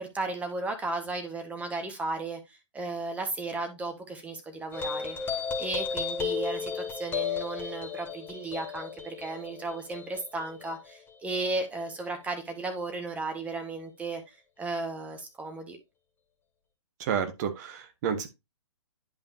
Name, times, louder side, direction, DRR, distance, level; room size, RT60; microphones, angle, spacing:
voice 1, 0.0-5.2 5.6-15.8, right 3 dB, 10° right, 1.5 m, -35 dB
sound 1, 4.7-11.6, left 6 dB, 15° left, 1.3 m, -34 dB
voice 2, 17.0-18.3, right 7 dB, 35° right, 1.4 m, -30 dB
10.5 x 5.3 x 2.8 m
figure-of-eight pair, 125°, 15 cm